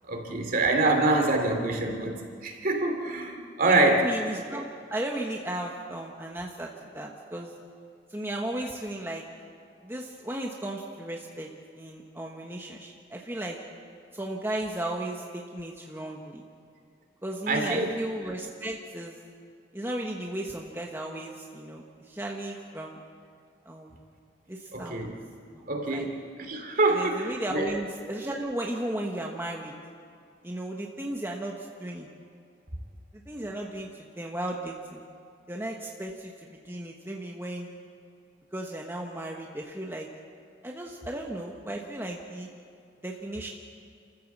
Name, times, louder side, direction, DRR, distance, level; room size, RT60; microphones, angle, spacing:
voice 1, 0.0-4.1 17.5-17.9 24.7-25.2 25.7-27.8, right 2 dB, 50° right, 3 dB, 2.9 m, -26 dB
voice 2, 3.6-7.5 8.1-9.2 9.8-11.5 11.8-13.6 14.1-16.4 17.2-19.1 19.7-23.0 23.7-24.0 24.5-25.0 25.5-25.6 25.9-26.1 26.9-29.7 30.4-32.1 33.3-33.9 34.2-35.0 35.5-36.3 36.6-37.7 38.5-40.1 40.6-42.5 43.0-43.5, right 1 dB, 15° right, 0 dB, 1.2 m, -35 dB
29.5 x 14.0 x 7.4 m, 2.2 s
head